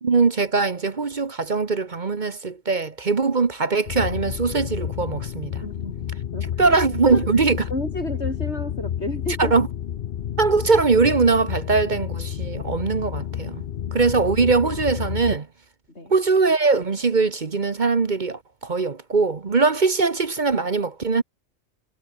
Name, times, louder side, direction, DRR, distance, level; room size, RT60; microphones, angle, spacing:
voice 1, 0.0-5.6 6.6-7.6 9.4-9.7 10.4-13.6 13.9-15.5 16.1-21.2, right 4 dB, 45° right, 1.2 m, -21 dB
sound 1, 3.9-15.4, left 10 dB, 55° left, 0.8 m, -30 dB
voice 2, 5.6-6.8 7.1-7.2 7.7-9.5 13.8-13.9 15.9-16.1, left 2 dB, 70° left, 6.1 m, -32 dB
omnidirectional pair, 1.2 m